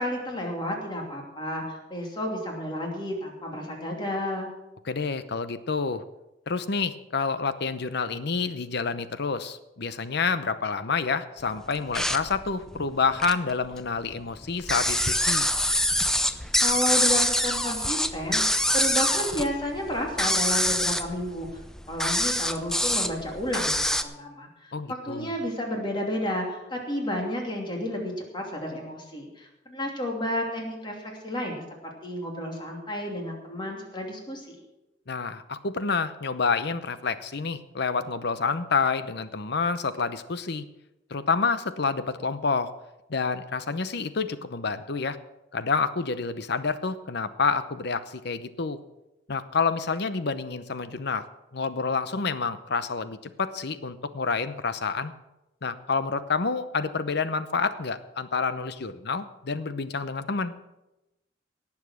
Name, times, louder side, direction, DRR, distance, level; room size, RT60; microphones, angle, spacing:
voice 1, 0.0-4.5 16.6-21.6 21.9-31.6 32.0-34.6, left 1 dB, 25° left, 0 dB, 2.8 m, -31 dB
voice 2, 4.9-6.0 6.5-15.5 24.7-25.3 35.1-40.7 41.1-42.7 43.1-45.2 45.5-48.8 49.3-51.2 51.5-55.1 55.6-60.5, left 4 dB, 65° left, 12 dB, 0.8 m, -28 dB
sound 1, 11.7-13.5 13.9-24.0, left 1 dB, 5° left, 0.6 m, -25 dB
18.0 x 7.2 x 6.3 m, 0.98 s
head